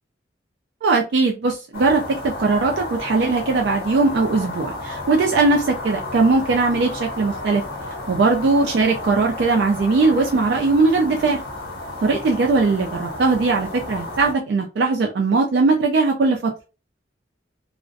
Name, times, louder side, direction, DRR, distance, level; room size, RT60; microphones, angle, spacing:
voice 1, 0.8-7.6 8.1-11.4 12.0-16.5, right 3 dB, 60° right, 1 dB, 0.3 m, -19 dB
sound 1, 1.7-14.3, left 2 dB, 55° left, 1.0 m, -32 dB
2.4 x 2.0 x 2.5 m, 0.32 s
head